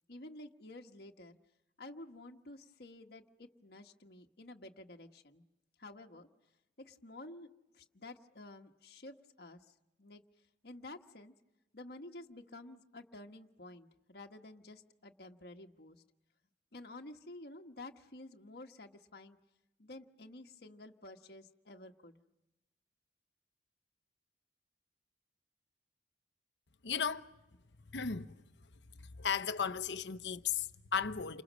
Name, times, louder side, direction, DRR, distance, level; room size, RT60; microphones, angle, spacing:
voice 1, 0.1-1.4 1.8-5.4 5.8-6.3 6.8-7.5 7.7-10.2 10.6-11.3 11.7-16.0 16.7-19.4 19.8-22.2, left 2 dB, 60° left, 1.4 m, -51 dB
voice 2, 26.8-27.3 27.9-28.3 29.0-31.4, left 7 dB, 85° left, 1.0 m, -35 dB
29.5 x 26.5 x 6.3 m
head